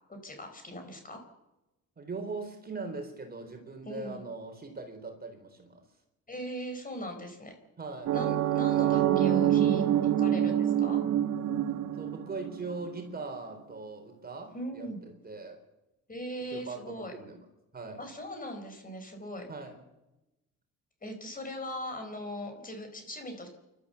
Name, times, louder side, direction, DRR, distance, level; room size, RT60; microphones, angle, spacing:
voice 1, 0.1-1.2 3.8-4.2 6.3-7.6 8.1-11.0 14.5-15.0 16.1-17.1 18.0-19.5 21.0-23.5, equal, 30° left, 6 dB, 4.8 m, -40 dB
voice 2, 2.0-5.8 7.8-8.1 11.9-14.9 15.2-15.6 16.5-17.4 17.7-18.0 19.5-19.8, right 3 dB, 30° right, 5 dB, 4.1 m, -40 dB
sound 1, 8.1-12.9, right 11 dB, 80° right, 1.7 m, -26 dB
29.5 x 12.5 x 7.1 m, 0.99 s
cardioid pair, 90°, 30 cm